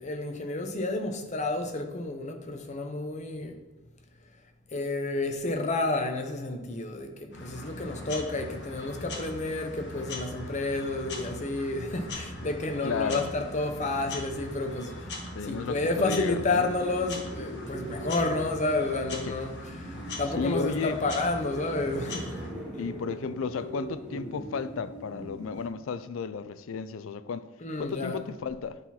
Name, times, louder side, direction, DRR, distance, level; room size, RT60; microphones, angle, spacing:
voice 1, 0.0-3.6 4.7-14.9 15.4-22.4 27.6-28.2, left 2 dB, 35° left, 0.8 m, -30 dB
sound 1, 7.3-22.5, left 1 dB, 60° left, 1.4 m, -40 dB
voice 2, 12.8-13.3 15.3-16.7 19.3-19.4 20.4-21.0 22.8-27.5 27.8-28.8, left 5 dB, 90° left, 0.4 m, -33 dB
sound 2, 16.2-25.7, right 1 dB, 5° right, 2.4 m, -42 dB
9.7 x 4.1 x 4.3 m
head